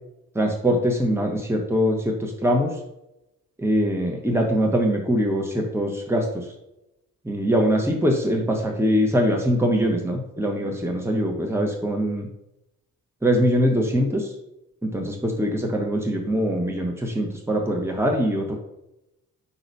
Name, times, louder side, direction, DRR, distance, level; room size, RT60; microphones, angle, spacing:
voice 1, 0.3-2.7 3.6-6.4 7.2-12.3 13.2-14.3 14.8-18.5, equal, 5° right, 1 dB, 1.6 m, -23 dB
5.9 x 3.9 x 5.5 m, 0.87 s
hypercardioid pair, 40°, 44 cm